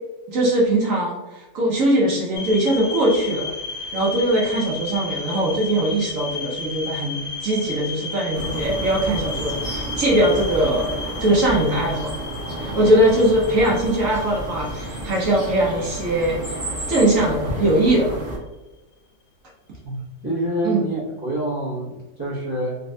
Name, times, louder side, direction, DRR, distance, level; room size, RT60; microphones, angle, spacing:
voice 1, 0.3-3.5 3.9-10.9 11.2-12.2 12.6-16.6 16.9-18.2 20.6-20.9, right 1 dB, 65° right, -3 dB, 0.8 m, -21 dB
sound 1, 2.3-17.3, left 4 dB, 85° left, 1.7 m, -34 dB
sound 2, 8.3-18.4, right 1 dB, 10° right, 1.0 m, -31 dB
voice 2, 19.8-22.8, right 1 dB, 35° right, -8 dB, 0.3 m, -27 dB
4.0 x 2.2 x 2.6 m, 1.1 s
omnidirectional pair, 1.9 m